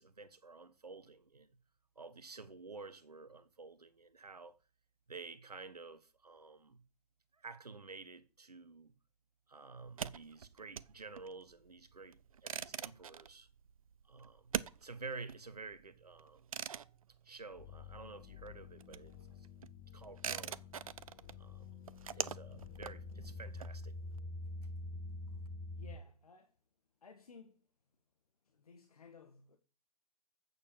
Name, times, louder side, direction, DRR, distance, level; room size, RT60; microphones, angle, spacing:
voice 1, 0.0-1.5 1.9-4.6 5.1-6.8 7.3-8.9 9.5-13.5 14.0-14.5 14.8-16.5 17.2-19.5 19.9-20.6 21.4-21.7 22.1-24.0, right 4 dB, 75° right, 1.4 m, -51 dB
sound 1, 9.8-18.1 18.4-24.2, right 8 dB, 60° right, 0.6 m, -44 dB
sound 2, 17.6-26.0, left 2 dB, 25° left, 1.4 m, -47 dB
voice 2, 25.8-26.6 27.0-27.7 28.4-29.6, left 5 dB, 65° left, 1.6 m, -57 dB
8.5 x 7.0 x 7.3 m
figure-of-eight pair, 120°, 20 cm